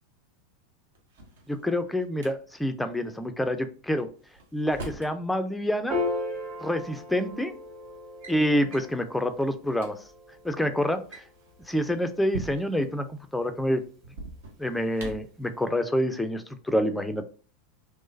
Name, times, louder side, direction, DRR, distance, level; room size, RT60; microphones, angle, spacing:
Drawer open or close, 0.9-2.3 4.0-5.1 6.4-6.5 7.3-7.6 7.9-8.4 8.7-9.0 9.4-9.5 9.7-9.9 10.9-12.9 14.0-15.4, right 2 dB, 65° right, 0.8 m, -42 dB
voice 1, 1.5-4.1 4.5-6.0 6.6-7.5 8.3-10.0 10.4-11.2 11.7-13.8 14.6-17.2, equal, 5° left, 8 dB, 0.4 m, -27 dB
Piano, 5.9-12.5, left 2 dB, 35° right, 1.8 m, -37 dB
3.6 x 3.0 x 2.6 m, 0.39 s
figure-of-eight pair, 85°, 0 cm